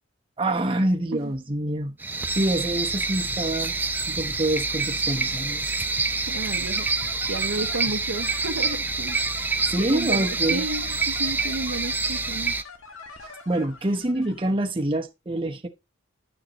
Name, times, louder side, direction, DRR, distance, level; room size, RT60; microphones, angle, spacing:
voice 1, 0.4-2.0 2.3-3.7 4.1-5.7 9.6-10.6 13.5-15.7, right 1 dB, 25° right, 0.9 m, -26 dB
sound 1, 2.0-12.6, right 3 dB, 10° right, 0.5 m, -27 dB
voice 2, 6.3-9.2 9.8-12.6 13.2-13.3, right 2 dB, 90° right, 0.9 m, -32 dB
sound 2, 6.6-14.5, left 3 dB, 75° left, 1.7 m, -43 dB
11.5 x 6.7 x 2.9 m
head